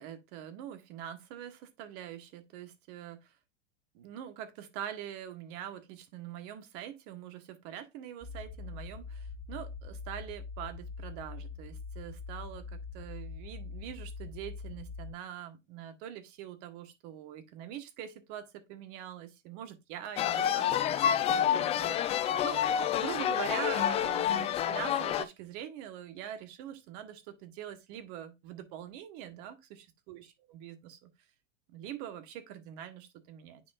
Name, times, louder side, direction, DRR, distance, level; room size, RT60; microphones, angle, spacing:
voice 1, 0.0-3.3 3.9-31.1 31.7-33.6, right 10 dB, 45° right, 1.4 m, -44 dB
sound 1, 8.2-15.1, left 4 dB, 25° right, 1.6 m, -43 dB
sound 2, 20.2-25.2, left 9 dB, 15° left, 0.4 m, -28 dB
9.6 x 4.3 x 2.5 m
hypercardioid pair, 105°, 37 cm